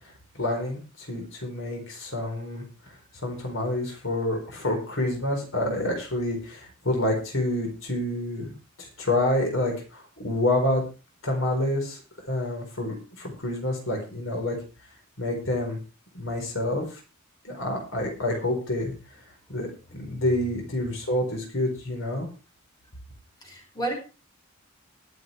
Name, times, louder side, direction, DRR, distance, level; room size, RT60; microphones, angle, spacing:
voice 1, 0.3-2.6 3.2-10.8 11.2-12.0 12.3-14.6 15.2-15.8 16.1-16.9 17.4-18.9 19.5-19.7 19.9-22.3, left 1 dB, 70° left, 1 dB, 4.7 m, -28 dB
voice 2, 19.9-20.3 23.4-23.9, right 2 dB, 20° left, 1 dB, 5.4 m, -33 dB
22.0 x 8.1 x 3.5 m, 0.32 s
head